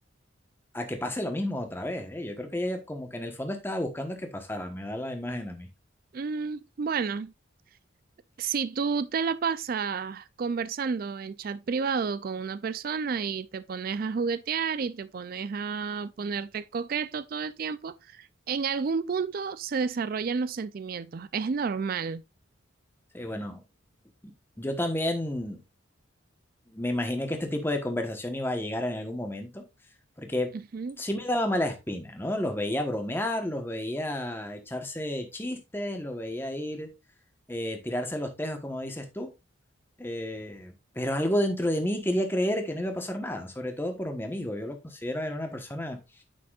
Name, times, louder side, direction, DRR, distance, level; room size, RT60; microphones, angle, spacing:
voice 1, 0.7-5.7 23.1-23.6 24.2-25.6 26.7-29.6 30.2-30.5 31.0-36.9 37.5-39.3 40.0-46.0, left 1 dB, 10° left, 1.1 m, -31 dB
voice 2, 6.1-7.3 8.4-22.2 30.7-31.0, right 5 dB, 45° right, 0.3 m, -31 dB
8.8 x 5.9 x 2.4 m
head